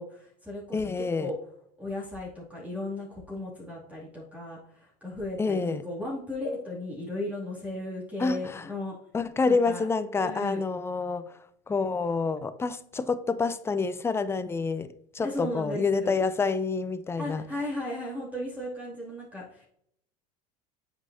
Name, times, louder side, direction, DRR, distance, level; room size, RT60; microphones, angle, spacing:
voice 1, 0.0-1.3 1.8-8.9 9.4-9.8 10.1-10.6 15.2-16.2 17.2-19.6, left 1 dB, 5° right, 2.5 m, -36 dB
voice 2, 0.7-1.3 5.4-5.8 8.2-8.7 9.1-11.3 11.7-14.9 15.1-17.4, left 4 dB, 10° left, 0.4 m, -28 dB
8.0 x 5.4 x 2.7 m
supercardioid pair, 100°, 20 cm